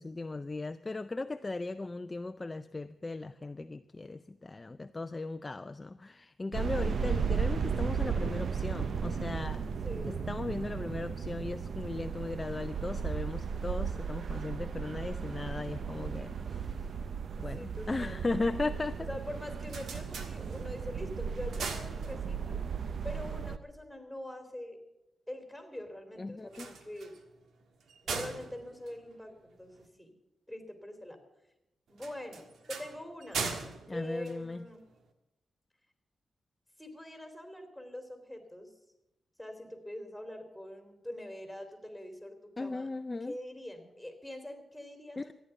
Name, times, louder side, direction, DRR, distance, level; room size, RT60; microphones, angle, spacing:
voice 1, 0.0-9.6 10.3-16.8 17.4-19.1 26.2-26.7 33.9-34.6 42.6-43.3 45.2-45.3, left 3 dB, 25° left, 0.5 m, -37 dB
sound 1, 6.5-23.6, right 6 dB, 65° right, 0.7 m, -35 dB
voice 2, 9.8-10.3 17.4-18.2 19.0-22.6 23.0-24.8 25.3-27.2 28.0-30.1 30.5-31.2 31.9-33.6 33.9-34.8 36.8-38.7 39.4-42.9 43.2-45.3, left 1 dB, ahead, 2.9 m, -44 dB
sound 2, 19.6-20.9 21.3-22.6 26.4-29.9 32.0-35.0, right 4 dB, 85° right, 1.5 m, -41 dB
14.0 x 10.0 x 8.0 m
cardioid pair, 100°, 0 cm